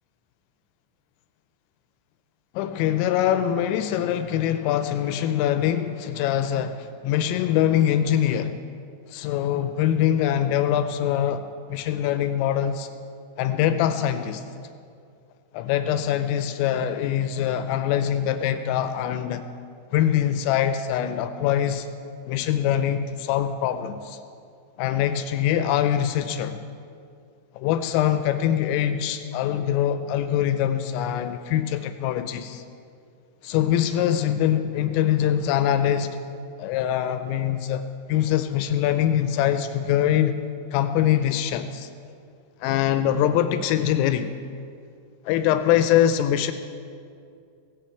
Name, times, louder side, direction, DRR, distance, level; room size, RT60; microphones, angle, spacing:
voice 1, 2.5-8.6 9.1-11.4 11.7-12.9 13.4-14.4 15.5-19.5 19.9-21.9 22.3-24.2 24.8-26.6 27.6-32.6 33.4-36.2 36.6-40.4 40.7-41.9 42.6-44.3 45.3-46.5, left 10 dB, 85° left, 9 dB, 3.2 m, -23 dB
17.5 x 16.5 x 4.5 m, 2.4 s
omnidirectional pair, 5.8 m